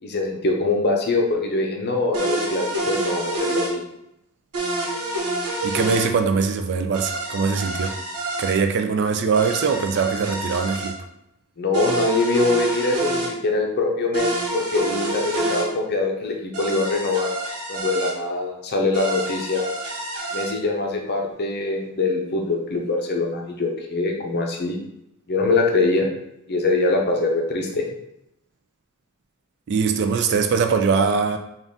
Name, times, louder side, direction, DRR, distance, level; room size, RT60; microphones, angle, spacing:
voice 1, 0.0-3.8 11.6-17.3 17.7-19.6 20.3-24.8 25.3-26.1 26.5-27.8, left 3 dB, 45° left, 1 dB, 0.6 m, -23 dB
sound 1, 2.1-3.7 4.5-6.1 6.9-8.5 9.3-10.9 11.7-13.3 14.1-15.7 16.5-18.1 18.9-20.5, right 2 dB, 85° right, 1.0 m, -27 dB
voice 2, 5.6-7.9 8.4-10.9 29.7-31.4, right 5 dB, 50° right, 6 dB, 0.3 m, -22 dB
4.0 x 2.4 x 3.6 m, 0.81 s
head